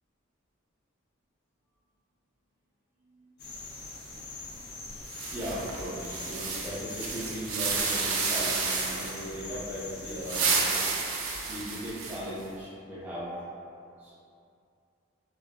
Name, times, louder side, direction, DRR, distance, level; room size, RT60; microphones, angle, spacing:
voice 1, 3.0-3.9 4.4-4.6 4.9-10.7 11.1-13.4 14.0-14.1, equal, 10° right, -10 dB, 0.6 m, -38 dB
sound 1, 3.4-10.5, left 3 dB, 50° left, 0.4 m, -43 dB
sound 2, 5.1-9.3 10.1-12.4, right 4 dB, 80° right, 0.4 m, -31 dB
2.4 x 2.4 x 2.3 m, 2.5 s
head